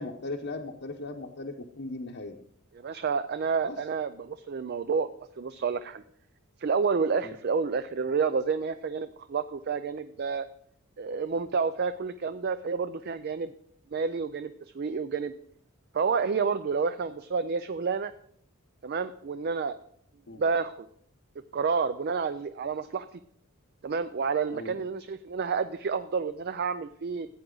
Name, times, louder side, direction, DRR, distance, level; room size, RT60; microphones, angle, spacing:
voice 1, 0.0-2.4 3.7-3.8 7.2-7.3 20.3-20.4 24.5-24.7, left 2 dB, 50° left, -1 dB, 0.8 m, -38 dB
voice 2, 2.7-5.1 5.4-6.0 6.6-10.5 11.0-13.5 13.9-15.3 15.9-18.1 18.8-19.8 20.4-20.9 21.5-23.2 23.8-27.3, right 5 dB, 45° right, 12 dB, 0.4 m, -29 dB
15.0 x 8.8 x 3.9 m, 0.67 s
head